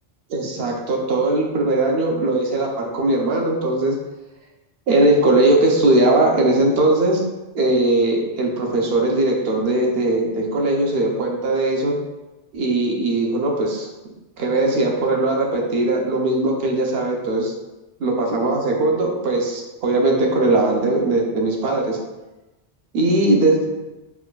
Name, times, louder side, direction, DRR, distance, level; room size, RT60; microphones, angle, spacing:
voice 1, 0.3-4.0 4.9-7.2 7.5-11.9 12.5-13.9 14.4-17.5 18.0-22.0 22.9-23.7, right 2 dB, 70° right, 0 dB, 0.8 m, -19 dB
4.6 x 2.2 x 2.2 m, 1.0 s
omnidirectional pair, 1.1 m